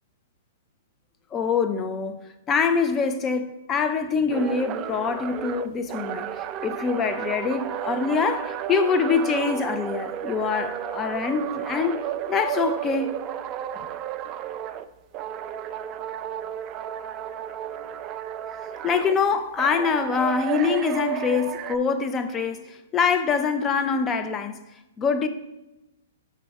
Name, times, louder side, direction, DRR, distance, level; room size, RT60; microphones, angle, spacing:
voice 1, 1.3-6.3 6.6-12.0 12.3-13.2 18.8-24.6 25.0-25.3, left 5 dB, 20° left, 0.5 m, -24 dB
sound 1, 4.3-14.9 15.1-19.2 19.6-21.8, right 11 dB, 30° right, 0.3 m, -32 dB
6.1 x 5.8 x 3.4 m
hypercardioid pair, 130°, 0 cm